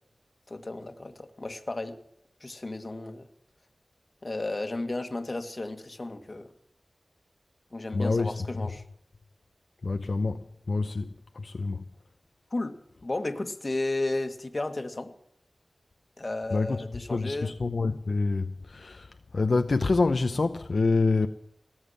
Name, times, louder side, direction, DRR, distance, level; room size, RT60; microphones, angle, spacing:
voice 1, 0.5-2.0 2.4-3.3 4.2-6.5 7.7-8.8 12.5-15.1 16.2-17.5, left 2 dB, 40° left, 1.7 m, -33 dB
voice 2, 7.9-8.5 9.8-11.8 16.5-16.8 17.1-21.3, left 3 dB, 65° left, 0.7 m, -27 dB
18.5 x 7.3 x 10.0 m
wide cardioid pair, 60°, 0 cm